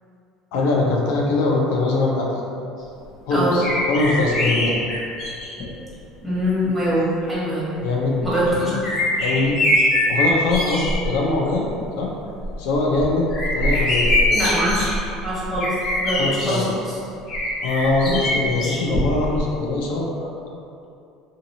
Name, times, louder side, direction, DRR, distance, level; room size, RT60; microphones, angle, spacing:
voice 1, 0.5-2.3 3.2-4.7 7.8-8.2 8.5-8.8 9.2-9.6 10.1-11.7 12.0-12.1 12.6-13.3 13.5-14.4 14.7-14.8 16.2-16.7 17.6-20.1, left 2 dB, 75° left, -2 dB, 0.5 m, -22 dB
voice 2, 3.3-3.6 6.2-7.7 8.2-8.7 14.3-14.8 15.2-15.7 16.0-16.9, equal, 5° left, -11 dB, 1.4 m, -23 dB
sound 1, 3.6-5.7 6.5-6.6 8.2-11.1 11.5-11.9 12.3-16.6 17.3-19.4 19.7-19.8, left 1 dB, 55° left, 0.8 m, -23 dB
2.7 x 2.5 x 2.8 m, 2.6 s
hypercardioid pair, 80°, 0 cm